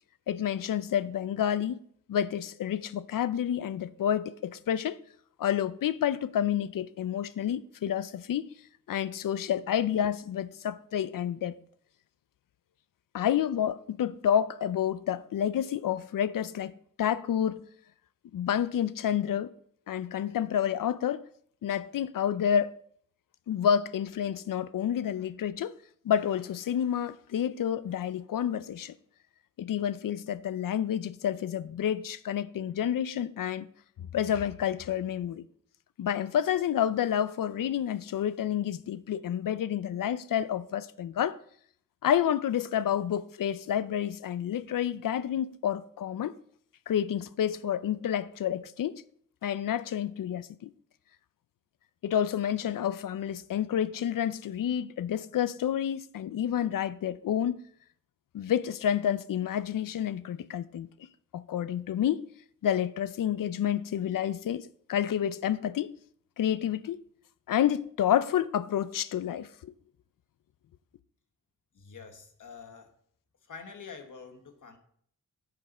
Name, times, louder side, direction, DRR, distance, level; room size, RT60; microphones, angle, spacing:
voice 1, 0.3-1.8 2.1-5.0 5.4-8.5 8.9-11.5 13.1-16.7 17.0-17.6 18.3-19.5 19.9-21.2 21.6-22.7 23.5-25.7 26.0-28.9 29.6-33.7 34.0-35.4 36.0-41.4 42.0-46.4 46.9-49.0 49.4-50.7 52.0-57.6 58.3-60.9 61.3-62.3 62.6-66.0 66.4-67.0 67.5-69.7, left 9 dB, 90° left, 0.5 m, -29 dB
voice 2, 71.7-72.9 73.4-74.8, left 5 dB, 70° left, 1.3 m, -46 dB
10.5 x 6.6 x 4.2 m
wide cardioid pair, 170°, 32 cm